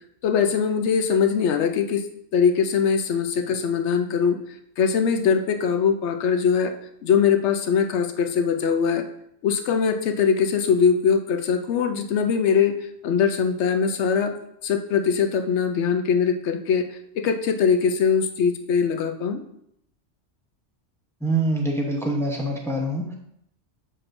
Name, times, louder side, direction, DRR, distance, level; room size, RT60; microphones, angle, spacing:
voice 1, 0.2-2.0 2.3-4.4 4.8-6.7 7.0-9.1 9.4-14.3 14.6-19.4, left 6 dB, 75° left, 8 dB, 1.0 m, -22 dB
voice 2, 21.2-23.2, right 1 dB, 5° left, 0 dB, 0.8 m, -25 dB
7.9 x 5.9 x 2.6 m, 0.74 s
omnidirectional pair, 1.2 m